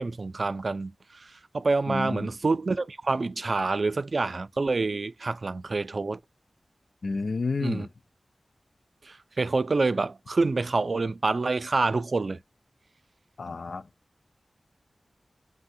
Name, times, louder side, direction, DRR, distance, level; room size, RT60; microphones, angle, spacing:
voice 1, 0.0-6.2 7.6-7.9 9.0-12.4, right 3 dB, 55° right, 0.4 m, -27 dB
voice 2, 1.9-2.3 7.0-7.9 13.4-13.9, left 4 dB, 70° left, 0.4 m, -30 dB
3.4 x 2.1 x 2.7 m
wide cardioid pair, 90°, 0 cm